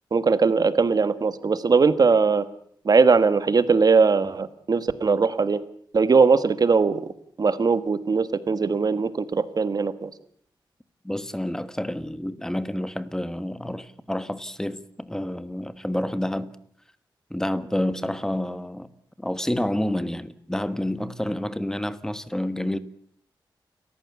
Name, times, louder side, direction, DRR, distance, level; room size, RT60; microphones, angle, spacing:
voice 1, 0.1-2.4 2.8-5.6 5.9-7.0 7.4-10.1, right 4 dB, 50° right, 1.5 m, -20 dB
voice 2, 11.0-16.6 17.3-18.9 19.2-22.8, left 1 dB, 5° left, 1.4 m, -29 dB
29.0 x 14.5 x 8.3 m
wide cardioid pair, 100°, 8 cm